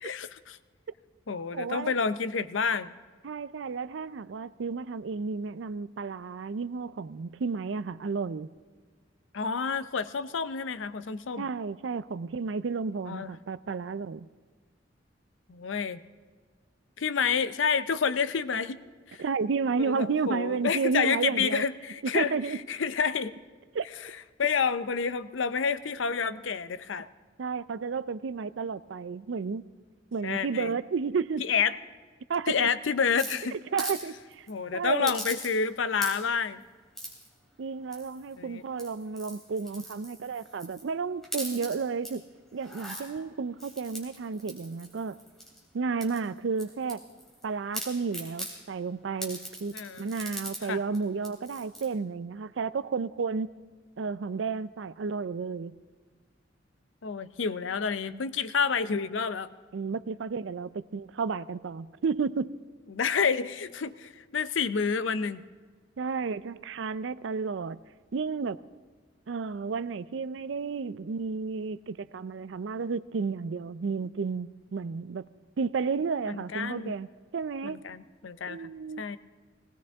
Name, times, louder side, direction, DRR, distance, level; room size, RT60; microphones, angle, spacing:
voice 1, 0.0-0.6 1.3-2.9 9.3-11.5 13.1-13.3 15.5-16.0 17.0-18.8 19.1-19.2 19.8-22.4 22.7-23.3 24.0-24.1 24.4-27.1 30.2-30.7 31.4-31.8 32.5-33.5 34.5-36.6 38.4-38.6 49.7-50.1 50.6-50.8 57.0-59.5 62.9-65.4 76.3-76.9 77.6-78.7 79.0-79.2, left 6 dB, 90° left, 0.6 m, -29 dB
voice 2, 1.5-1.9 3.2-8.5 11.4-14.3 19.2-21.6 22.0-22.6 23.7-23.9 27.4-29.6 30.1-31.4 32.3-32.7 33.7-34.5 34.7-35.1 37.6-42.2 42.5-45.2 45.7-47.0 47.4-53.5 54.0-55.8 58.1-58.2 59.7-62.5 66.0-67.8 68.1-68.6 69.3-75.3 75.6-77.1 77.3-77.8 78.5-79.1, right 5 dB, 75° right, 0.4 m, -32 dB
sound 1, 33.2-34.0 34.3-34.5 35.1-35.7 36.0-36.4 37.0-37.3 37.9-38.3 38.7-40.8 41.2-42.1 42.6-43.0 43.6-45.6 46.0-47.4 47.7-48.5 49.2-50.6 50.9-51.0 51.2-51.9, equal, ahead, 3.3 m, -40 dB
18.5 x 18.0 x 3.5 m
head